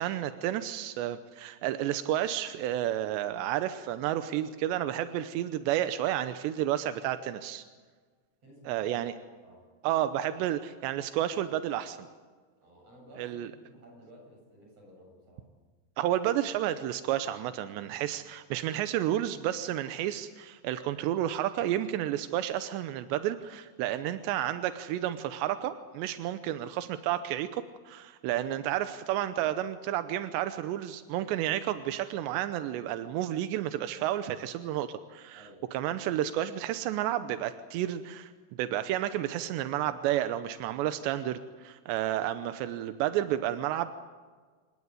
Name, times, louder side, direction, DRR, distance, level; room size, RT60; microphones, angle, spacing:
voice 1, 0.0-7.6 8.7-9.1 9.8-12.1 13.2-13.5 16.0-38.3 38.6-43.9, right 12 dB, 90° right, 10 dB, 3.1 m, -31 dB
voice 2, 8.4-8.9 9.4-9.7 12.6-15.5 35.3-35.7, equal, 35° right, 0 dB, 9.1 m, -54 dB
27.5 x 17.0 x 9.6 m, 1.5 s
omnidirectional pair, 4.9 m